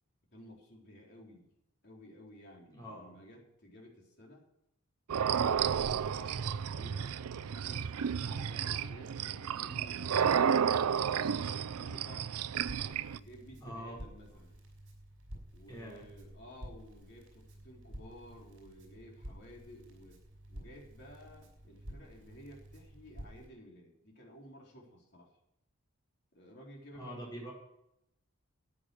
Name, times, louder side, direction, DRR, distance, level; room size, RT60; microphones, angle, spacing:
voice 1, 0.3-1.5 1.8-4.4 5.2-10.7 11.2-14.6 15.5-20.2 20.5-25.4 26.3-27.3, equal, 50° left, -2 dB, 4.0 m, -54 dB
voice 2, 2.7-3.1 13.6-14.0 15.7-16.1 26.9-27.5, equal, 15° left, -3 dB, 5.0 m, -44 dB
sound 1, 5.1-13.2, right 7 dB, 90° right, 0.5 m, -32 dB
Crackle, 12.6-23.5, equal, 60° right, 5.2 m, -51 dB
13.5 x 9.3 x 6.3 m, 0.81 s
head